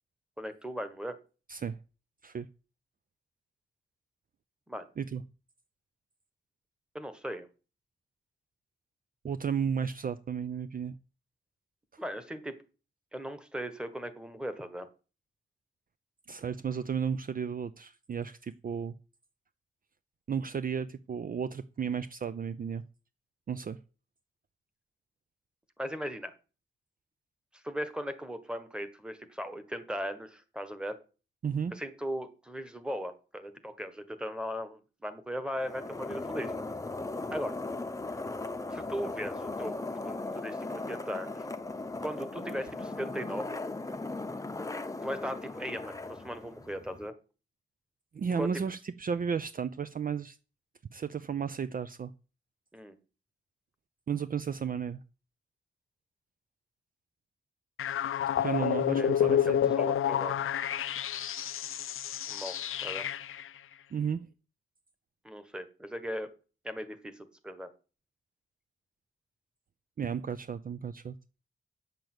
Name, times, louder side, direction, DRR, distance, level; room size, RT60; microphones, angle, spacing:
voice 1, 0.4-1.1 4.7-4.9 6.9-7.5 12.0-12.5 13.1-14.9 25.8-26.3 27.6-31.0 31.7-36.5 37.3-37.6 38.7-39.8 40.0-41.4 42.0-43.6 45.0-47.1 48.4-48.5 52.7-52.9 58.6-58.7 59.0-59.4 59.8-60.5 62.3-63.1 65.2-66.3 66.6-67.7, equal, 5° right, 1.5 m, -38 dB
voice 2, 9.2-11.0 11.9-12.0 16.3-19.0 20.3-22.8 23.5-23.8 31.4-31.7 48.1-50.4 50.9-52.1 54.1-55.0 58.4-59.8 63.9-64.3 70.0-71.1, right 7 dB, 45° right, 0.5 m, -33 dB
sound 1, 35.5-47.1, left 2 dB, 15° left, 0.8 m, -38 dB
sound 2, 57.8-63.5, left 10 dB, 85° left, 0.6 m, -29 dB
9.0 x 6.9 x 7.9 m
wide cardioid pair, 140°, 21 cm